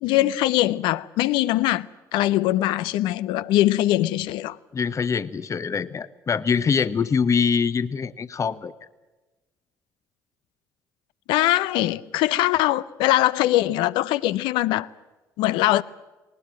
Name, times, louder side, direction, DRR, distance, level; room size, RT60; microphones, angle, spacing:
voice 1, 0.0-4.6 11.3-14.9 15.4-15.8, left 15 dB, 80° left, 0.6 m, -22 dB
voice 2, 4.7-8.7, left 6 dB, 40° left, 0.9 m, -24 dB
20.0 x 19.5 x 8.9 m
hypercardioid pair, 55°, 8 cm